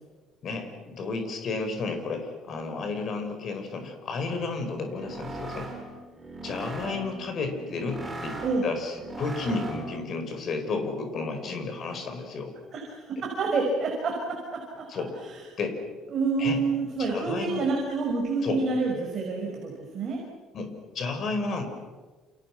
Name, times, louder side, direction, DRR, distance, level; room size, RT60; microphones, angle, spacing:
voice 1, 0.4-5.7 6.4-12.5 14.9-15.1 15.6-15.8 16.4-16.6 17.1-17.7 18.4-18.6 20.5-21.6, left 3 dB, 40° left, 5 dB, 5.2 m, -32 dB
sound 1, 4.8-10.1, right 2 dB, 10° right, 4.7 m, -39 dB
voice 2, 12.7-14.9 15.2-15.4 16.1-20.2, right 4 dB, 40° right, 0 dB, 5.9 m, -28 dB
30.0 x 29.0 x 6.2 m, 1.3 s
cardioid pair, 160°, 0 cm